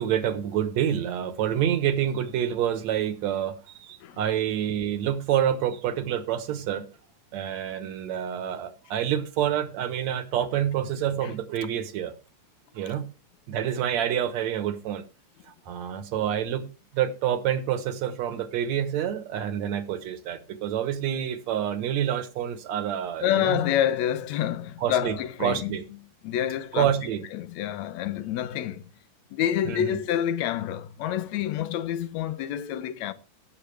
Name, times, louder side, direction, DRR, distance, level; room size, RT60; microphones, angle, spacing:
voice 1, 0.0-6.9 7.3-12.1 12.8-13.1 13.5-15.1 15.7-16.7 16.9-23.6 24.8-25.8 26.7-27.2 29.7-30.0, right 10 dB, 70° right, 2.2 m, -27 dB
voice 2, 23.2-25.8 26.2-26.9 27.3-28.9 29.3-33.1, left 11 dB, 75° left, 2.0 m, -27 dB
17.5 x 7.9 x 3.3 m
omnidirectional pair, 3.4 m